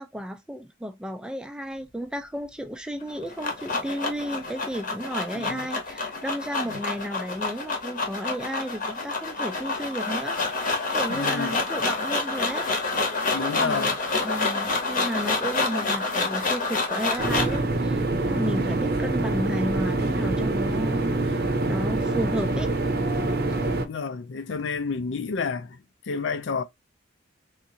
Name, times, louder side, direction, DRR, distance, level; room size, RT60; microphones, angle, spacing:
voice 1, 0.0-10.4 10.9-13.1 13.4-13.9 14.2-21.4 21.7-22.7 23.5-23.6, equal, 5° right, 0.3 m, -33 dB
sound 1, 3.0-17.6, left 3 dB, 40° left, 1.0 m, -28 dB
voice 2, 11.1-11.6 13.3-14.0 18.3-18.6 23.8-25.8 26.1-26.6, left 5 dB, 65° left, 0.4 m, -30 dB
sound 2, 17.2-23.8, right 2 dB, 50° right, 0.7 m, -25 dB
3.6 x 2.7 x 2.7 m
head